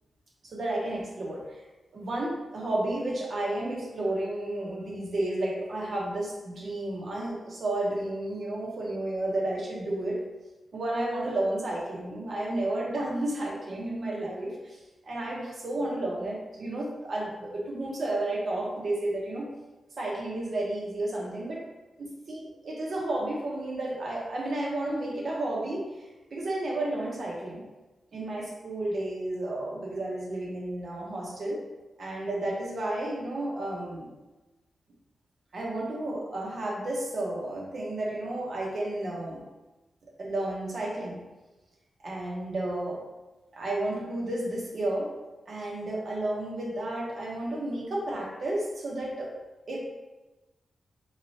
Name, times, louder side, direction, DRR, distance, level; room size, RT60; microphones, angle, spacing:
voice 1, 0.4-1.6 1.9-10.2 10.7-19.5 20.0-21.6 22.0-25.8 26.3-27.6 28.1-31.6 32.0-34.1 35.5-39.4 40.2-41.2 42.0-43.0 43.5-45.1 45.5-49.3 49.7-49.8, right 1 dB, 60° right, -3 dB, 0.9 m, -32 dB
3.6 x 3.2 x 2.7 m, 1.1 s
wide cardioid pair, 105°, 0 cm